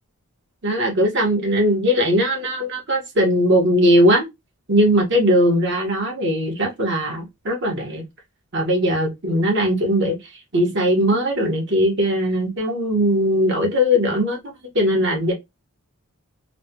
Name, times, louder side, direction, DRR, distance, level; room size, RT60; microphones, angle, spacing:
voice 1, 0.6-4.3 4.7-8.0 8.5-10.2 10.5-14.4 14.7-15.3, equal, 55° right, 1.1 m, -19 dB
3.2 x 2.2 x 2.7 m
head